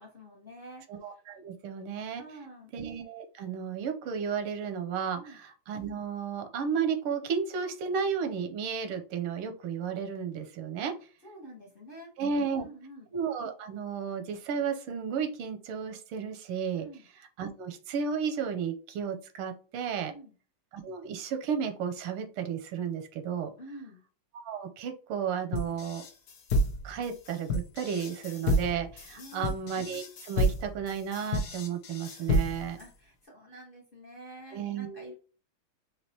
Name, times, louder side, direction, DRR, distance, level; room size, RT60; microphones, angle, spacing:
voice 1, 0.0-0.9 2.2-2.7 5.1-5.4 10.8-10.9 11.2-13.1 16.8-17.1 20.0-20.3 23.6-24.0 29.1-29.6 32.8-35.1, right 1 dB, 35° left, -2 dB, 1.0 m, -48 dB
voice 2, 0.9-2.2 2.7-10.9 12.2-12.6 13.1-16.9 17.4-20.1 20.7-23.5 24.4-26.0 26.8-32.8 34.5-35.1, right 6 dB, 85° right, 7 dB, 1.6 m, -33 dB
sound 1, 25.5-32.8, equal, 60° left, 1.2 m, -30 dB
5.2 x 2.8 x 2.8 m, 0.36 s
omnidirectional pair, 2.4 m